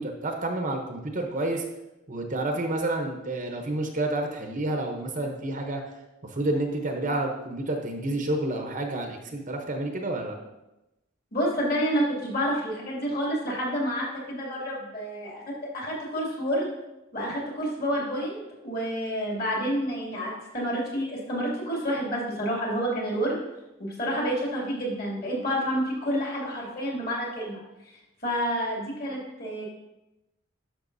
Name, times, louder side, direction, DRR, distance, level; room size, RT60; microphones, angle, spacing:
voice 1, 0.0-1.6 2.1-5.8 6.2-10.3, right 2 dB, 35° right, 3 dB, 0.8 m, -29 dB
voice 2, 11.3-15.4 15.7-16.7 17.1-23.4 23.8-27.6 28.2-29.7, equal, 45° left, -4 dB, 2.5 m, -29 dB
11.0 x 6.1 x 2.6 m, 0.97 s
head